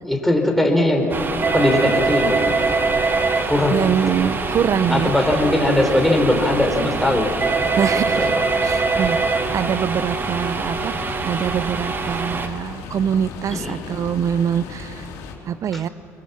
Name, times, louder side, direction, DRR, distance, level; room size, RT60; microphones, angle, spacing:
voice 1, 0.0-1.1 1.5-2.4 3.5-3.9 4.7-7.4 8.1-8.4 9.0-9.1 13.5-13.8 15.7-15.8, left 1 dB, 5° left, 2 dB, 4.7 m, -20 dB
sound 1, 1.1-12.5, right 4 dB, 30° right, 1.9 m, -23 dB
sound 2, 1.8-15.3, left 5 dB, 75° left, 3.5 m, -36 dB
voice 2, 3.7-5.1 7.8-8.3 8.6-15.1 15.5-15.9, right 8 dB, 50° right, 17 dB, 0.7 m, -24 dB
23.5 x 22.0 x 7.4 m, 2.9 s
hypercardioid pair, 60°, 7 cm